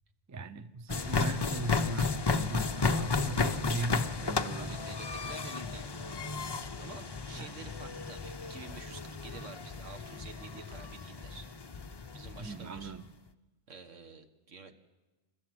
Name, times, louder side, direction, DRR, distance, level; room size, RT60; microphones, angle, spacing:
voice 1, 0.3-4.8 7.4-7.5 12.4-13.1, right 2 dB, 20° right, 12 dB, 0.5 m, -39 dB
Gym - Running Machine, 0.9-12.9, left 4 dB, 30° left, 0.5 m, -34 dB
voice 2, 4.6-6.1 6.8-11.5 12.1-12.9 13.7-14.7, right 4 dB, 75° right, 7 dB, 1.7 m, -49 dB
28.5 x 13.0 x 7.9 m, 1.1 s
omnidirectional pair, 1.3 m